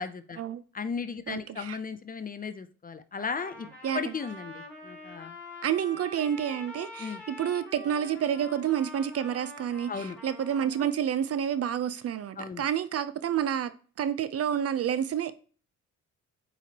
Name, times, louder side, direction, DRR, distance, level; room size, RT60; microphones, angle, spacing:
voice 1, 0.0-0.4 0.7-3.7 3.9-5.4 7.0-7.2 9.9-10.2 12.4-12.6, left 5 dB, 30° left, 0.6 m, -35 dB
voice 2, 1.3-1.8 3.8-4.1 5.6-13.7 14.0-15.3, right 9 dB, 50° right, 0.6 m, -29 dB
Trumpet, 3.2-10.9, left 1 dB, 5° left, 3.3 m, -45 dB
8.1 x 4.5 x 2.9 m
cardioid pair, 90°, 30 cm